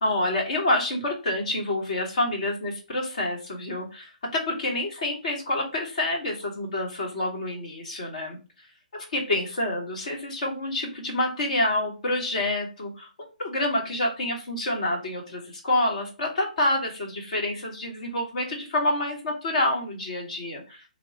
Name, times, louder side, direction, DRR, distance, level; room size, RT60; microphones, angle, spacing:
voice 1, 0.0-8.7 8.9-13.1 13.4-20.8, left 1 dB, 55° left, 0 dB, 1.2 m, -28 dB
3.0 x 2.3 x 4.2 m, 0.31 s
figure-of-eight pair, 130°, 5 cm